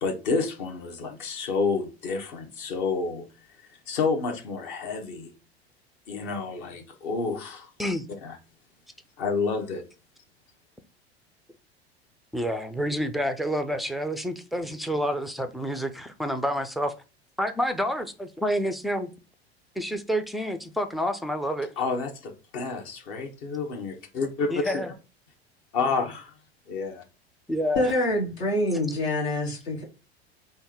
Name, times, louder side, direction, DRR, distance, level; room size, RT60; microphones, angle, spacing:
voice 1, 0.0-3.3 3.9-5.3 6.1-7.7 8.2-8.4 9.2-9.8 21.8-24.8 25.7-26.3 26.7-27.0, left 4 dB, 55° left, 1.2 m, -29 dB
voice 2, 12.3-16.9 17.4-19.1 19.8-21.7 24.5-24.9 27.5-27.9, equal, ahead, 0.3 m, -28 dB
voice 3, 27.7-29.8, left 1 dB, 70° left, 1.3 m, -26 dB
3.6 x 2.6 x 4.3 m
figure-of-eight pair, 80°, 32 cm